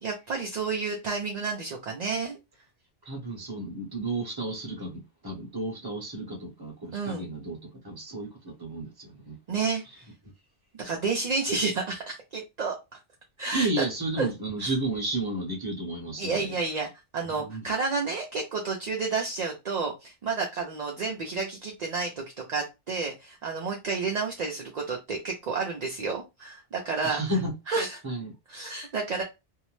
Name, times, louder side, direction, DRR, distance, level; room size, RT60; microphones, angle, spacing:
voice 1, 0.0-2.4 6.9-7.3 9.5-9.8 10.7-12.8 13.4-13.8 14.2-14.3 14.6-14.7 16.2-27.2 27.7-28.0 28.5-29.2, right 4 dB, 50° right, 0.5 m, -30 dB
voice 2, 3.0-7.6 7.8-9.4 13.5-16.5 17.3-17.6 27.0-27.5 28.0-28.3, right 2 dB, 20° right, 0.8 m, -32 dB
2.7 x 2.0 x 3.0 m
omnidirectional pair, 1.2 m